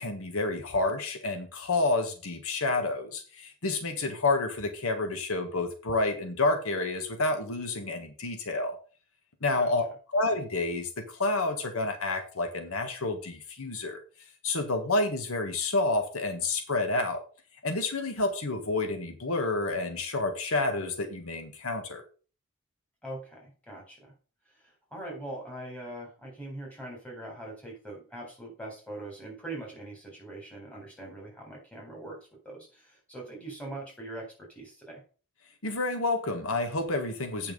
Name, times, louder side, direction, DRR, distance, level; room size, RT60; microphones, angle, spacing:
voice 1, 0.0-8.8 9.4-9.9 10.1-14.0 14.4-17.2 17.6-22.0 35.6-37.5, left 2 dB, 75° left, 6 dB, 1.5 m, -29 dB
voice 2, 23.0-24.1 24.9-32.2 32.4-35.0, right 1 dB, 5° left, -1 dB, 4.1 m, -42 dB
8.8 x 5.8 x 5.3 m, 0.37 s
head